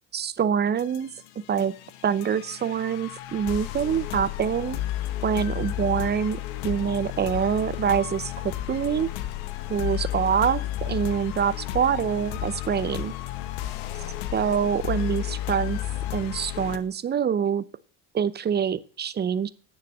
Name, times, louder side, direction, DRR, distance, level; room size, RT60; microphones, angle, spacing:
voice 1, 0.1-1.1 1.5-1.7 2.0-4.8 5.2-8.3 8.7-9.1 9.7-13.1 14.3-15.8 16.1-17.6 18.1-19.5, right 8 dB, 25° right, 0.6 m, -25 dB
sound 1, 0.8-16.8, left 13 dB, 80° left, 1.2 m, -32 dB
9.4 x 7.0 x 7.2 m
supercardioid pair, 100°, 38 cm